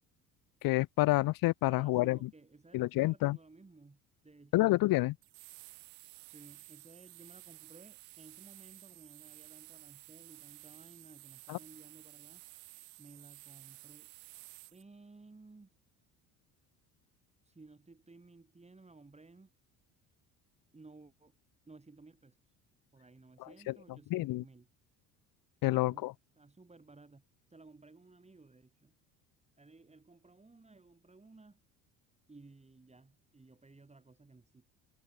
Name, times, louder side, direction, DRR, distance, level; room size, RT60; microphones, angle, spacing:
voice 1, 0.6-2.3 2.7-3.4 4.5-5.2 11.5-11.6 23.7-23.8 24.1-24.4 25.6-26.1, left 19 dB, 60° left, 0.9 m, -28 dB
voice 2, 1.7-4.7 6.2-12.4 13.0-14.1 14.7-15.7 17.4-19.5 20.7-21.4 21.7-22.4 22.9-24.7 25.7-26.1 26.4-27.2 27.5-28.9 29.6-31.6 32.3-34.6, right 3 dB, 15° right, 5.0 m, -57 dB
sound 1, 5.2-14.8, right 38 dB, 85° right, 3.9 m, -54 dB
supercardioid pair, 85°, 38 cm